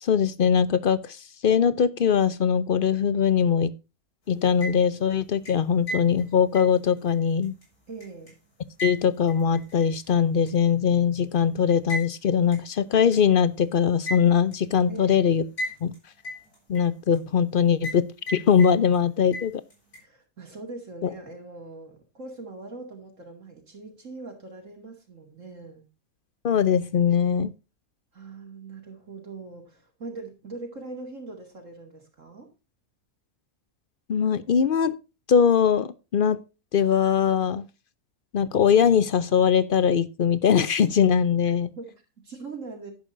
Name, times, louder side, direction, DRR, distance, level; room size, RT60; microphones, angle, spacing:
voice 1, 0.0-3.7 4.3-7.5 8.8-15.4 15.8-15.9 16.7-19.6 21.0-21.1 26.4-27.5 34.1-34.9 35.3-36.4 36.7-37.6 38.3-41.7, left 7 dB, 55° left, 16 dB, 0.6 m, -21 dB
sound 1, 4.4-5.1 5.5-8.3 8.8-10.1 10.5-10.6 11.9-12.1 12.5-12.6 13.1-13.2 14.1-14.6 15.6-16.0 16.2-17.2 17.8-18.0 18.3-19.0 19.3-20.0, equal, 85° left, 5.7 m, -35 dB
voice 2, 7.9-8.4 14.9-15.2 20.0-25.9 28.1-32.5 41.8-42.9, right 3 dB, 55° right, 3 dB, 2.6 m, -41 dB
11.0 x 10.5 x 2.6 m, 0.29 s
omnidirectional pair, 1.6 m